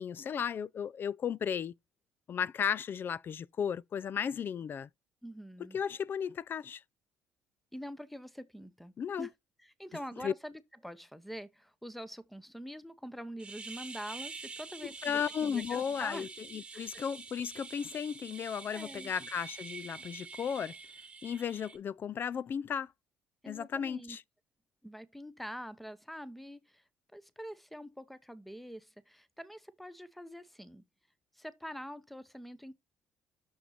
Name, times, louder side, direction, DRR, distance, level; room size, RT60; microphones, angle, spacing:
voice 1, 0.0-1.7 2.3-4.9 5.6-6.8 9.0-9.3 10.2-10.3 15.0-20.7 21.2-22.9 23.5-24.2, left 7 dB, 45° left, 0.4 m, -35 dB
voice 2, 5.2-5.8 7.7-9.3 9.6-16.3 16.7-17.0 18.7-19.1 23.4-24.2 24.8-26.8 27.1-30.8 31.3-32.7, equal, ahead, 1.0 m, -45 dB
sound 1, 13.4-21.8, right 4 dB, 20° right, 1.4 m, -46 dB
6.4 x 5.8 x 4.1 m
supercardioid pair, 70°, 5 cm